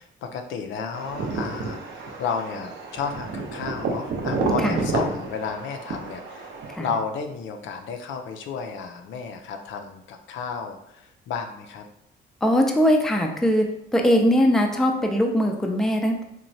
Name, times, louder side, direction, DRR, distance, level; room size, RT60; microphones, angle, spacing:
voice 1, 0.0-11.8, left 5 dB, 75° left, 5 dB, 0.4 m, -32 dB
sound 1, 0.9-6.8, right 3 dB, 60° right, 0.5 m, -30 dB
voice 2, 12.4-13.7 13.9-16.2, equal, ahead, 2 dB, 0.3 m, -20 dB
3.0 x 2.1 x 2.6 m, 0.77 s
cardioid pair, 90°, 20 cm